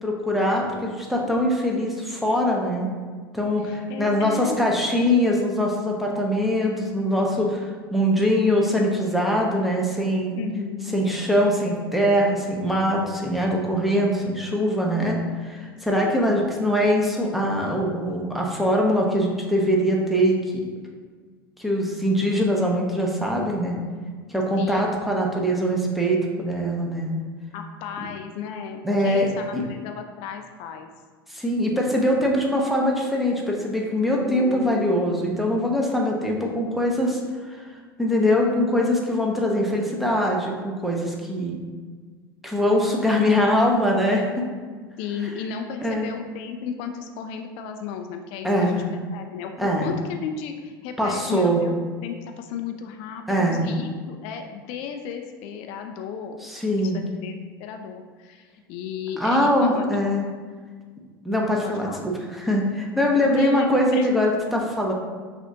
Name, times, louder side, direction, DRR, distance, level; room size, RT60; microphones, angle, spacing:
voice 1, 0.0-2.9 3.3-10.4 10.9-20.4 21.6-23.8 24.3-27.1 28.8-29.6 31.3-37.2 37.5-37.6 38.0-41.6 42.4-44.4 45.8-46.1 48.4-48.8 49.6-49.9 51.0-51.6 53.3-53.7 56.4-57.0 59.2-60.3 61.2-64.9, equal, ahead, -1 dB, 0.8 m, -22 dB
voice 2, 3.6-4.6 10.3-11.0 15.9-16.3 24.6-24.9 27.5-30.9 34.1-35.0 45.0-56.4 56.8-57.3 57.6-59.8 61.6-62.0 63.2-64.1, left 7 dB, 50° left, 5 dB, 0.4 m, -34 dB
5.9 x 2.5 x 2.8 m, 1.5 s
hypercardioid pair, 80°, 12 cm